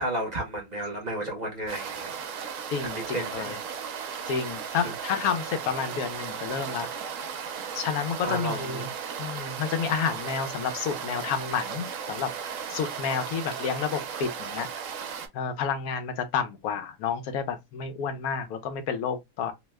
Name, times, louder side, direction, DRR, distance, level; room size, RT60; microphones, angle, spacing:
voice 1, 0.0-2.1 2.9-3.5 4.8-4.9 8.2-8.9, right 1 dB, 35° right, 0.8 m, -32 dB
sound 1, 1.7-15.3, right 7 dB, 70° right, 0.9 m, -36 dB
voice 2, 2.7-3.6 4.3-6.9 7.7-8.9 9.2-12.3 12.7-14.7 15.3-19.5, left 6 dB, 85° left, 1.1 m, -30 dB
2.8 x 2.1 x 3.2 m
omnidirectional pair, 1.5 m